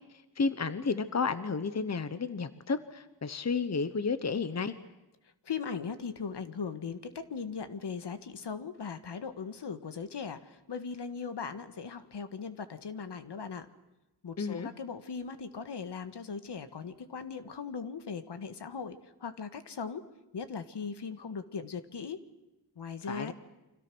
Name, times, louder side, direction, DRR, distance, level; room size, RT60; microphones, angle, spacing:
voice 1, 0.4-4.7 14.4-14.7 23.0-23.3, left 4 dB, 40° left, 12 dB, 1.1 m, -32 dB
voice 2, 5.5-13.7 14.2-20.0 20.3-22.2 22.8-23.3, left 5 dB, 75° left, 10 dB, 1.7 m, -39 dB
30.0 x 25.5 x 6.3 m, 0.99 s
wide cardioid pair, 135°, 42 cm